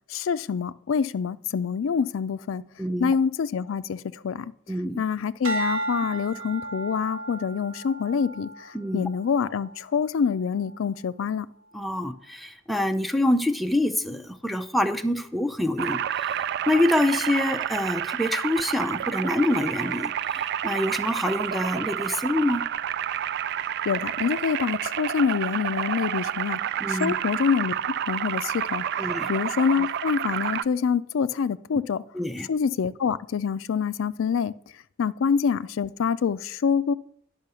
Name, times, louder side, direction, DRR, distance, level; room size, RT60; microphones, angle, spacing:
voice 1, 0.1-2.6 3.0-4.5 5.0-11.5 23.6-26.6 26.9-27.7 28.1-32.0 32.5-34.6 35.0-36.9, left 6 dB, 85° left, 0.4 m, -26 dB
voice 2, 2.8-3.2 4.7-5.0 8.7-9.1 11.7-22.6 26.8-27.1 29.0-29.3 32.1-32.5, left 1 dB, ahead, 0.5 m, -26 dB
sound 1, 5.4-9.9 10.5-10.9, right 2 dB, 90° right, 1.2 m, -34 dB
sound 2, 15.8-30.6, right 9 dB, 55° right, 0.3 m, -29 dB
10.5 x 5.6 x 6.8 m
head